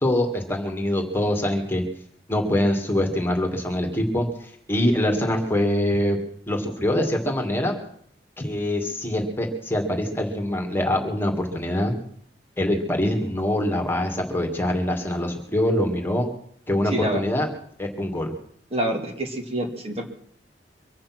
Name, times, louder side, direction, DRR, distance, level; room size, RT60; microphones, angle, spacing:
voice 1, 0.0-1.8 2.3-6.2 6.5-7.8 8.4-12.0 12.6-16.3 16.7-17.5 17.8-18.3, left 1 dB, 15° left, 2 dB, 2.3 m, -24 dB
voice 2, 16.9-17.2 18.7-20.1, right 1 dB, 35° right, 3 dB, 2.2 m, -27 dB
24.0 x 8.7 x 6.1 m, 0.64 s
head